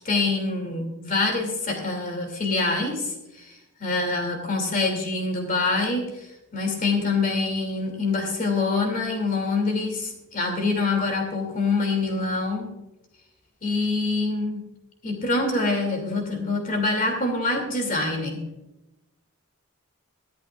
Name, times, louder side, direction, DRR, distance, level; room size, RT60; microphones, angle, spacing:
voice 1, 0.0-12.8 13.6-14.7 15.0-18.4, left 3 dB, 40° left, 3 dB, 2.9 m, -25 dB
24.0 x 8.4 x 2.5 m, 0.97 s
head